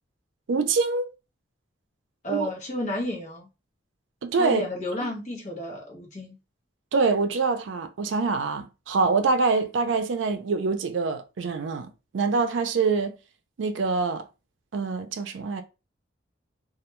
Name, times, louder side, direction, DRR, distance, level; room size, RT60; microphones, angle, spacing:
voice 1, 0.5-1.1 2.3-2.5 4.2-4.6 5.0-5.1 6.9-11.9 12.1-13.1 13.6-14.2 14.7-15.6, right 4 dB, 80° right, 0.4 m, -25 dB
voice 2, 2.2-3.5 4.3-6.4 9.0-9.2, left 1 dB, 40° left, 0.9 m, -32 dB
2.3 x 2.2 x 2.9 m
head